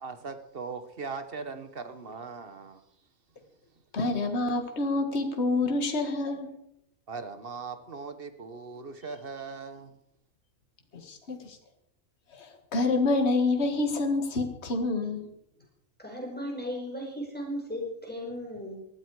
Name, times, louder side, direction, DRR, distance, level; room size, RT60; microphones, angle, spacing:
voice 1, 0.0-2.8 7.1-10.0, right 4 dB, 40° right, 10 dB, 1.3 m, -39 dB
voice 2, 3.9-6.5 10.9-11.6 12.3-15.3, left 3 dB, 50° left, 5 dB, 2.0 m, -27 dB
voice 3, 16.0-18.8, equal, 5° left, 0 dB, 5.1 m, -36 dB
19.5 x 13.5 x 4.8 m, 0.76 s
omnidirectional pair, 1.5 m